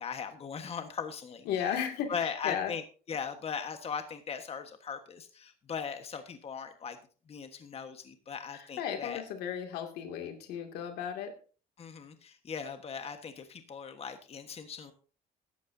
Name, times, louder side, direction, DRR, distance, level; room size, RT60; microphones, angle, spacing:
voice 1, 0.0-2.8 3.1-7.0 7.3-9.2 11.8-14.9, left 6 dB, 40° left, 7 dB, 1.4 m, -39 dB
voice 2, 1.5-2.7 8.5-11.3, left 8 dB, 90° left, 4 dB, 2.4 m, -35 dB
15.5 x 11.5 x 2.7 m, 0.38 s
cardioid pair, 105°, 16 cm